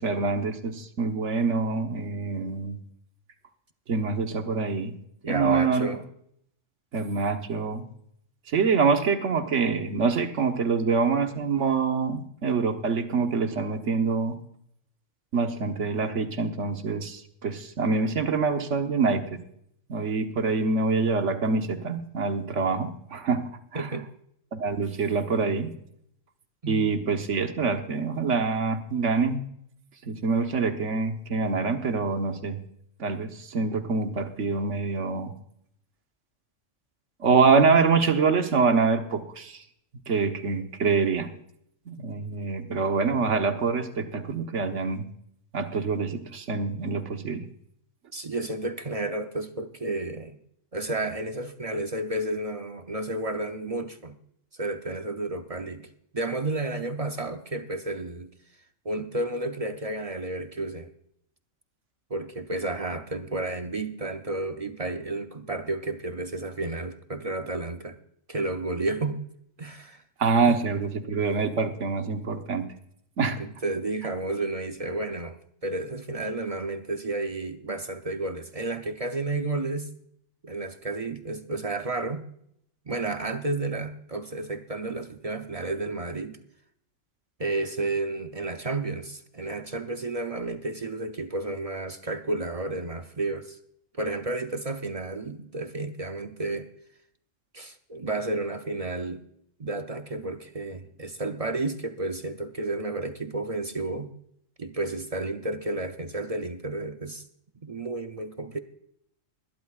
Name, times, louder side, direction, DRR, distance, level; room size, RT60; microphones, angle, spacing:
voice 1, 0.0-2.8 3.9-4.9 5.3-6.0 6.9-7.8 8.5-14.4 15.3-19.4 19.9-23.9 24.5-25.7 26.7-29.4 30.0-32.6 33.0-35.3 37.2-39.6 40.1-41.3 41.9-45.1 45.5-47.5 70.2-72.7 73.2-73.4, right 4 dB, 70° right, 1.5 m, -25 dB
voice 2, 5.2-6.0 23.7-24.1 26.6-26.9 48.1-50.4 50.7-54.2 54.5-58.3 58.8-60.9 62.1-68.0 68.3-69.2 69.6-70.0 70.4-70.6 73.4-79.9 80.4-82.3 82.9-86.4 87.4-93.6 93.9-96.7 97.5-99.2 99.6-104.1 104.6-107.2 107.6-108.6, right 2 dB, 40° right, 0.6 m, -31 dB
21.5 x 12.0 x 2.4 m
omnidirectional pair, 1.3 m